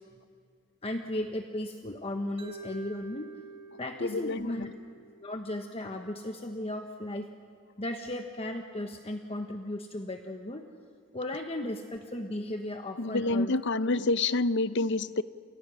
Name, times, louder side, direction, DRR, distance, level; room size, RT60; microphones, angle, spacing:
voice 1, 0.8-3.3 3.8-4.7 5.2-7.3 7.8-10.6 11.1-13.5, left 1 dB, 30° left, 5 dB, 1.1 m, -35 dB
Mallet percussion, 2.4-6.5, right 2 dB, 30° right, 3.7 m, -48 dB
voice 2, 4.0-4.7 13.0-15.2, left 2 dB, 55° left, 15 dB, 0.7 m, -28 dB
29.0 x 28.5 x 6.3 m, 2.3 s
head